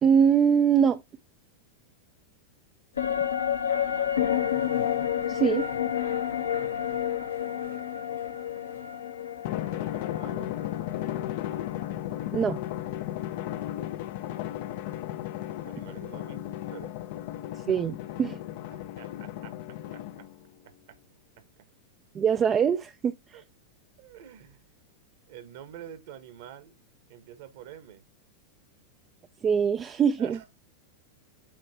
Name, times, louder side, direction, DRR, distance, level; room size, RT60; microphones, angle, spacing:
voice 1, 0.0-1.0 5.3-5.7 12.3-12.6 17.7-18.4 22.1-23.4 29.4-30.4, right 7 dB, 25° right, 0.5 m, -23 dB
sound 1, 3.0-12.5 12.8-12.9, left 9 dB, 70° left, 1.0 m, -30 dB
voice 2, 3.7-4.5 9.7-10.5 15.6-16.4 16.7-17.0 18.7-20.3 20.6-21.0 21.4-21.7 23.3-23.4 24.0-24.6 25.3-26.7 27.1-28.0 30.2-30.5, right 10 dB, 55° right, 1.5 m, -47 dB
sound 2, 3.9-9.0, equal, 90° right, 4.1 m, -51 dB
Drum, 9.4-20.4, left 13 dB, 50° left, 0.6 m, -35 dB
8.6 x 3.2 x 4.3 m
figure-of-eight pair, 90°, 0 cm